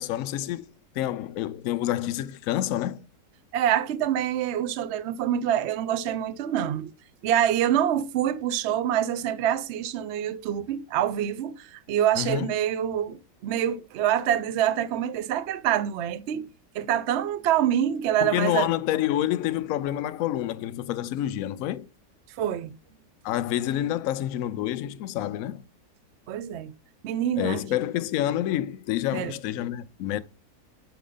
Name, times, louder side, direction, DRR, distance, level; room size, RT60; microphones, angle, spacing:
voice 1, 0.0-3.1 12.2-12.5 18.2-21.9 23.2-25.6 27.4-30.2, left 12 dB, 70° left, 0.8 m, -28 dB
voice 2, 3.5-6.9 7.2-18.7 22.4-22.7 26.3-26.7 27.0-27.6 29.1-29.3, right 10 dB, 75° right, 0.6 m, -26 dB
7.0 x 4.7 x 3.8 m
omnidirectional pair, 1.8 m